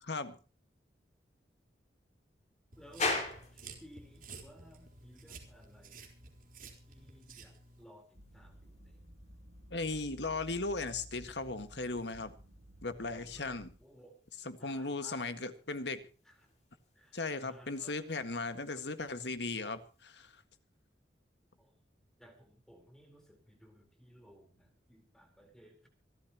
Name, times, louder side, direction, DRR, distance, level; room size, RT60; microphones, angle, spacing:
sound 1, 2.7-7.8, right 4 dB, 50° right, 4.1 m, -52 dB
voice 1, 2.8-3.2 3.5-6.1 6.9-9.1 13.0-14.2 14.6-15.5 16.2-16.5 16.9-18.0 21.6-21.8 22.2-25.9, equal, 5° left, 4 dB, 4.2 m, -58 dB
sound 2, 3.0-20.5, left 3 dB, 40° left, 5.0 m, -46 dB
sound 3, 8.1-13.8, equal, 85° right, 7.7 m, -55 dB
voice 2, 9.7-12.3 12.8-13.7 14.5-16.0 17.1-20.3, left 3 dB, 75° left, 9 dB, 1.8 m, -37 dB
26.5 x 13.0 x 3.0 m, 0.36 s
head